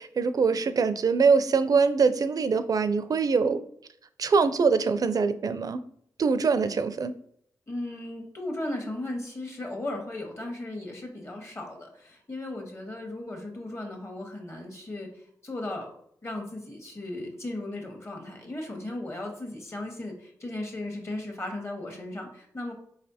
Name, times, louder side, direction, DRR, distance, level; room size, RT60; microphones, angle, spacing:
voice 1, 0.0-3.6 4.2-5.8 6.2-7.1, right 5 dB, 55° right, 11 dB, 0.4 m, -23 dB
voice 2, 7.7-15.9 16.2-22.7, left 1 dB, 35° left, 2 dB, 1.4 m, -36 dB
4.9 x 3.2 x 2.8 m, 0.67 s
cardioid pair, 50°, 7 cm